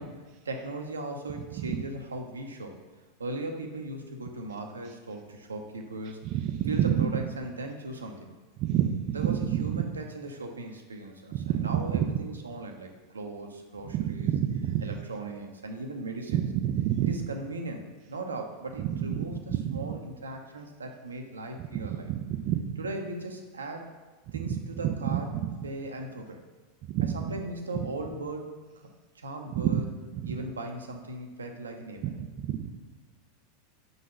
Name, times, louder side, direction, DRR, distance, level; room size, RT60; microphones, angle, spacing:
voice 1, 0.0-2.8 3.2-6.2 6.6-8.3 9.1-14.4 14.8-16.5 17.0-22.1 22.8-23.9 24.3-25.3 25.6-26.4 27.0-28.5 28.8-28.9 29.1-29.9 30.2-32.1, right 2 dB, 85° right, 3 dB, 0.7 m, -38 dB
voice 2, 6.3-7.1 8.6-9.8 11.3-12.1 13.9-14.8 16.3-17.1 18.9-19.8 22.3-22.8 25.0-25.2 26.9-27.2 29.5-29.8 32.0-32.1 32.5-32.7, right 11 dB, 45° right, 5 dB, 0.4 m, -28 dB
5.0 x 4.0 x 5.7 m, 1.3 s
figure-of-eight pair, 90°, 0 cm